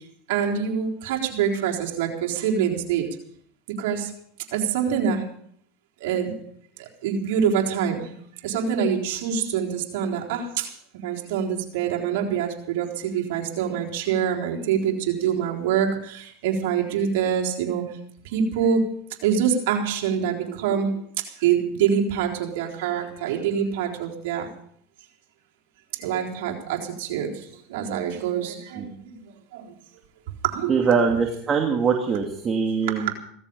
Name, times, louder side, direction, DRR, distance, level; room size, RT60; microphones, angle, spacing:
voice 1, 0.3-3.1 3.8-4.1 4.5-5.2 6.0-6.4 7.0-8.1 8.4-10.7 11.0-17.8 18.3-18.9 19.2-20.9 21.4-24.5 26.0-27.3 27.7-28.9 29.5-29.6 30.4-31.2 32.9-33.1, right 7 dB, 75° right, 0 dB, 3.9 m, -25 dB
voice 2, 30.7-33.1, right 5 dB, 30° right, 2 dB, 2.6 m, -22 dB
17.0 x 14.5 x 5.5 m, 0.65 s
supercardioid pair, 105°, 0 cm